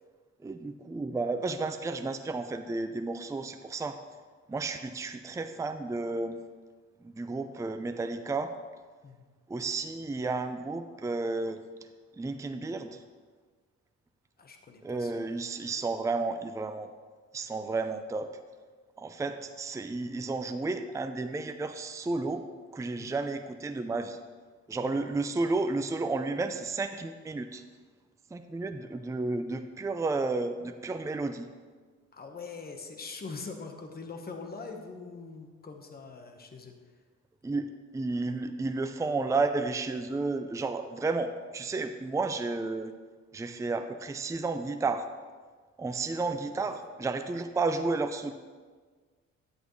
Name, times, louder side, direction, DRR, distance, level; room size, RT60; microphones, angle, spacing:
voice 1, 0.4-4.0 4.5-6.4 7.0-8.5 9.5-11.6 12.2-13.0 14.8-16.9 17.3-18.3 19.0-22.5 22.7-24.2 24.7-27.6 28.3-31.5 37.4-42.9 43.3-45.1 45.8-48.3, right 3 dB, 10° right, 8 dB, 0.5 m, -32 dB
voice 2, 14.4-15.2 15.7-15.8 23.0-23.1 24.8-24.9 32.1-36.7 46.6-46.8, left 4 dB, 30° left, 4 dB, 1.2 m, -43 dB
10.5 x 9.3 x 3.2 m, 1.5 s
cardioid pair, 90°, 30 cm